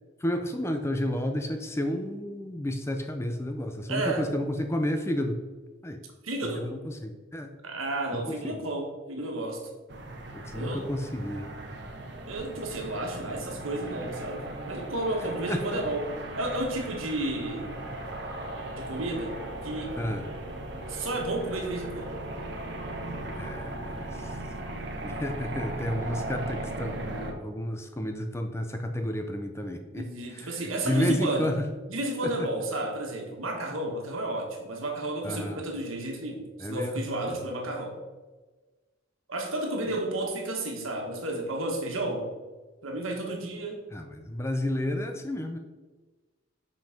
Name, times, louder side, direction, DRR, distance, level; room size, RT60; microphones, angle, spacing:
voice 1, 0.2-5.4 5.8-6.0 6.4-7.5 8.1-8.6 10.3-11.5 15.5-15.8 20.0-20.4 23.2-24.4 25.0-31.7 32.2-32.5 35.2-35.6 36.6-37.4 43.9-45.6, left 1 dB, 15° left, 5 dB, 0.5 m, -31 dB
voice 2, 3.9-4.3 6.2-6.7 7.6-9.7 10.5-10.9 12.3-17.8 18.7-20.0 20.9-22.1 30.0-31.5 31.9-38.0 39.3-42.3 42.8-43.8, right 1 dB, 85° right, 1 dB, 1.5 m, -32 dB
sound 1, 9.9-27.3, right 1 dB, 55° right, 1.0 m, -37 dB
5.9 x 5.3 x 5.1 m, 1.3 s
head